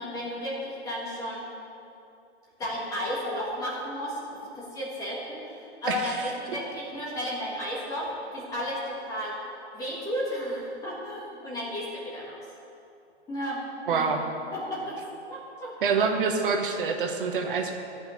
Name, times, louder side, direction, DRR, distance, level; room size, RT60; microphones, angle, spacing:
voice 1, 0.0-1.4 2.6-9.3 9.7-12.4 13.3-13.6 13.9-14.1 14.5-15.0 15.3-16.1, equal, 10° left, -6 dB, 1.5 m, -33 dB
voice 2, 13.9-14.2 15.8-17.8, right 5 dB, 50° right, 3 dB, 1.2 m, -26 dB
12.5 x 5.7 x 9.2 m, 2.7 s
hypercardioid pair, 165°, 34 cm